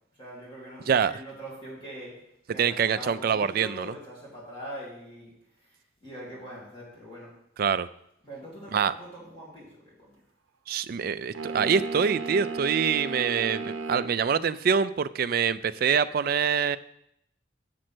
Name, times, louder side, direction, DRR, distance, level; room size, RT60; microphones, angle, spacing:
voice 1, 0.2-2.2 2.5-5.3 6.0-7.3 8.2-10.2, equal, 25° left, -6 dB, 2.7 m, -42 dB
voice 2, 0.9-1.2 2.6-3.9 7.6-7.9 8.7-8.9 10.7-16.8, right 6 dB, 50° right, 14 dB, 0.3 m, -25 dB
sound 1, 11.3-14.2, right 3 dB, 85° right, 0.7 m, -34 dB
7.5 x 6.4 x 6.1 m, 0.77 s
head